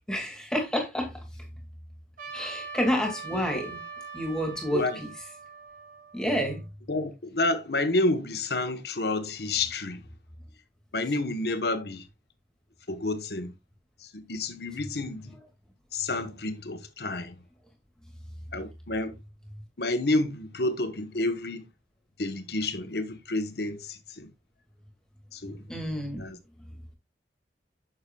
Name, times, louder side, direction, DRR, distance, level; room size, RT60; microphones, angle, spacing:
voice 1, 0.1-1.1 2.3-3.8 4.1-5.1 6.1-6.6 25.7-26.3, equal, 5° left, 2.2 m, -29 dB
Trumpet, 2.2-6.6, right 5 dB, 50° right, 3.7 m, -42 dB
voice 2, 4.7-5.0 6.9-10.0 10.9-12.0 12.9-13.5 14.1-15.3 15.9-17.4 18.5-19.2 19.8-21.7 22.2-24.3 25.3-25.6 26.2-26.4, left 2 dB, 65° left, 1.2 m, -29 dB
10.0 x 6.8 x 2.3 m
head